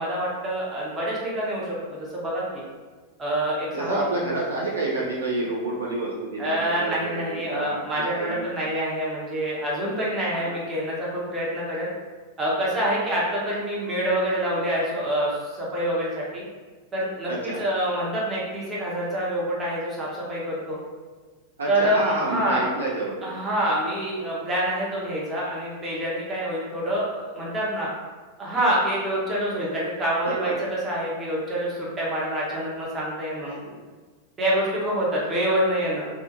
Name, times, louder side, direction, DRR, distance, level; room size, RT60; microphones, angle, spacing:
voice 1, 0.0-2.6 3.2-4.3 6.4-11.9 12.4-16.4 16.9-20.8 21.7-22.6 23.2-27.9 28.4-33.6 34.4-36.1, right 1 dB, 20° right, -6 dB, 0.8 m, -26 dB
voice 2, 3.7-8.5 10.3-10.6 12.8-12.9 17.3-17.7 21.6-23.4 30.2-30.6 33.4-33.7, right 2 dB, 70° right, -4 dB, 0.4 m, -29 dB
2.3 x 2.2 x 2.6 m, 1.4 s
figure-of-eight pair, 90°, 0 cm